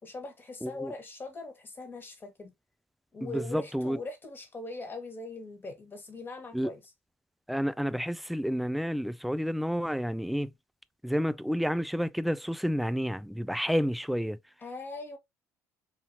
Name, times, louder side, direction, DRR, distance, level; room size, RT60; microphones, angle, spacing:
voice 1, 0.0-2.5 3.1-6.8 14.6-15.2, left 2 dB, 30° left, 1.5 m, -41 dB
voice 2, 0.6-0.9 3.2-4.0 6.5-6.7 7.5-10.5 11.0-14.4, equal, ahead, 0.3 m, -30 dB
4.2 x 2.8 x 2.7 m
hypercardioid pair, 65°, 7 cm